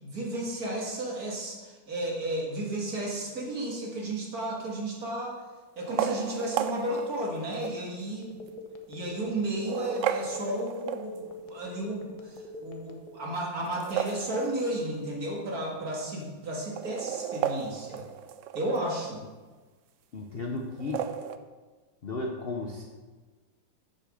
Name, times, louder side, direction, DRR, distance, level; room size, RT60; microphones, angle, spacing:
voice 1, 0.0-5.4 5.8-8.4 8.9-18.0 18.5-19.3, right 1 dB, 55° right, -2 dB, 2.4 m, -33 dB
sound 1, 4.1-4.6 5.8-7.8 8.5-8.6 9.5-11.4 13.6-15.0 15.3-15.4 15.6-15.7 16.6-18.8 20.7-21.4, right 9 dB, 85° right, 0.6 m, -34 dB
Telephone, 8.2-13.5, left 2 dB, 65° left, 1.4 m, -43 dB
voice 2, 20.1-21.1 22.0-22.8, left 3 dB, 45° left, 1 dB, 0.7 m, -34 dB
8.1 x 6.7 x 6.6 m, 1.3 s
omnidirectional pair, 2.0 m